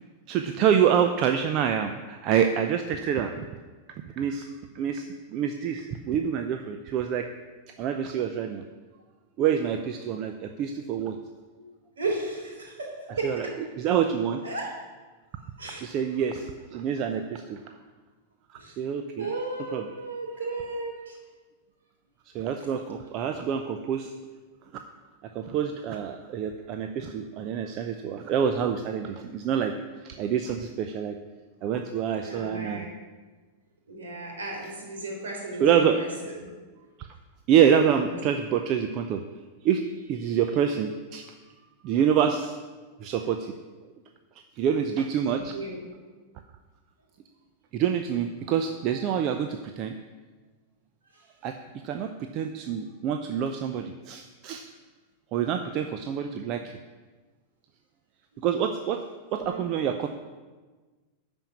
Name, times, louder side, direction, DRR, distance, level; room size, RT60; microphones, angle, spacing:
voice 1, 0.3-3.4 4.1-4.5 4.7-5.1 5.3-7.3 7.8-8.6 9.4-11.2 13.2-13.5 13.8-14.4 15.8-17.6 18.8-19.3 19.7-19.8 22.3-24.1 25.3-29.7 30.0-31.2 31.6-32.8 35.6-36.0 37.5-39.2 39.6-41.3 41.8-42.6 43.0-43.5 44.6-45.5 47.7-49.9 51.4-51.6 51.8-54.6 55.3-56.6 58.4-59.0 59.3-60.1, right 8 dB, 40° right, 6 dB, 0.7 m, -26 dB
voice 2, 12.0-13.3 14.4-14.7 15.6-15.9 17.6-17.7 18.6-18.8 19.2-21.2 32.2-32.9 33.9-36.4 37.9-38.2 45.3-45.9 48.9-49.2 51.1-51.2 59.4-59.6, right 2 dB, 65° right, 0 dB, 4.0 m, -35 dB
13.0 x 5.4 x 8.6 m, 1.3 s
figure-of-eight pair, 90°, 0 cm